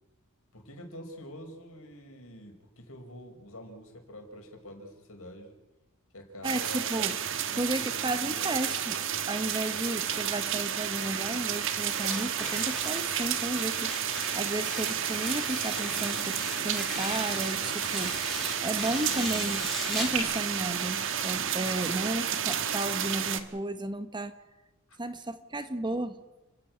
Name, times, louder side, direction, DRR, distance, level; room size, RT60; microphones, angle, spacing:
voice 1, 0.5-5.6 6.1-6.9 7.5-8.5 19.1-19.6 24.9-25.0, equal, 65° left, 3 dB, 5.0 m, -46 dB
voice 2, 6.4-7.2 7.5-18.2 18.6-19.6 19.9-24.3 25.0-26.2, right 1 dB, 20° right, 10 dB, 1.1 m, -33 dB
sound 1, 6.4-23.4, right 9 dB, 60° right, 1.5 m, -31 dB
Bird vocalization bird call bird song, 8.4-20.2, right 5 dB, 80° right, 6.3 m, -46 dB
Tearing, 11.9-20.2, left 1 dB, ahead, 3.7 m, -39 dB
29.5 x 10.5 x 9.8 m, 1.0 s
head